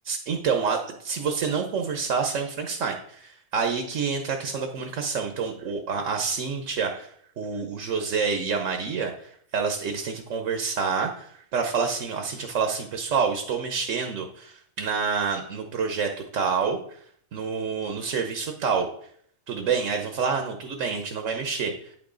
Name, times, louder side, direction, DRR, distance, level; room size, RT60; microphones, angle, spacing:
voice 1, 0.1-17.0 17.3-18.9 19.5-22.0, right 5 dB, 65° right, 4 dB, 1.2 m, -28 dB
9.2 x 6.1 x 3.8 m, 0.64 s
omnidirectional pair, 1.5 m